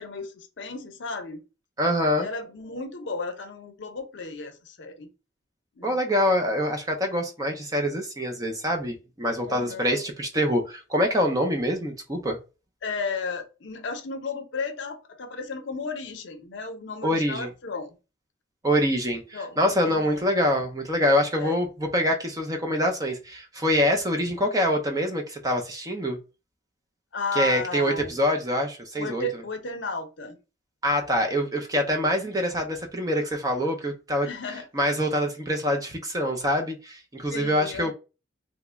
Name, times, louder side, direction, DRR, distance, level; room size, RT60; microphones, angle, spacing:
voice 1, 0.0-1.4 2.2-5.1 5.8-6.0 9.4-10.0 12.8-17.9 19.3-20.2 21.4-21.6 27.1-28.2 29.0-30.4 34.2-34.6 37.3-37.9, left 3 dB, 65° left, 0.6 m, -34 dB
voice 2, 1.8-2.3 5.8-12.4 17.0-17.5 18.6-26.2 27.3-29.4 30.8-34.3 34.7-37.9, equal, 20° right, 0.5 m, -25 dB
2.9 x 2.1 x 3.5 m
head